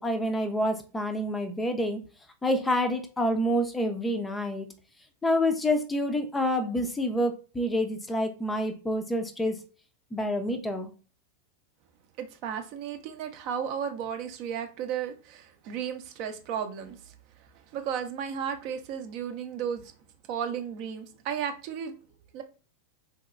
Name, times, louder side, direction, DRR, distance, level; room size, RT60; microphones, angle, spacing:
voice 1, 0.0-2.0 2.4-4.7 5.2-9.6 10.1-10.9, equal, 10° left, 7 dB, 0.5 m, -27 dB
voice 2, 12.2-17.1 17.7-19.8 20.3-21.9 22.3-22.4, right 8 dB, 45° right, 7 dB, 0.6 m, -34 dB
3.8 x 2.8 x 2.4 m, 0.36 s
figure-of-eight pair, 90°, 0 cm